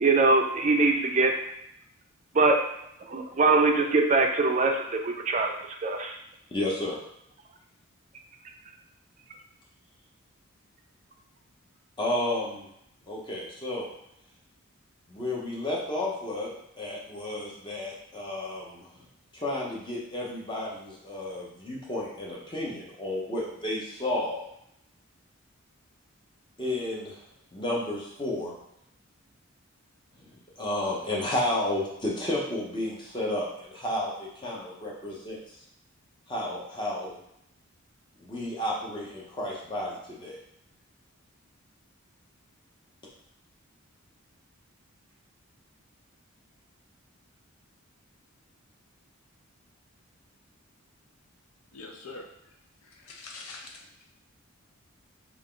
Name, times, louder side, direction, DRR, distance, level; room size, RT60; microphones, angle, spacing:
voice 1, 0.0-1.3 2.3-2.6 3.0-5.5 5.8-6.1, right 3 dB, 35° right, 3 dB, 0.4 m, -22 dB
voice 2, 6.5-7.0 12.0-12.7 13.1-13.9 15.1-18.9 19.3-24.5 26.6-27.2 27.5-28.5 30.6-35.4 36.3-37.2 38.2-40.4, left 1 dB, 20° left, -4 dB, 0.7 m, -32 dB
voice 3, 51.7-52.3 52.8-53.9, left 3 dB, 80° left, 2 dB, 0.6 m, -43 dB
3.5 x 2.4 x 3.7 m, 0.76 s
head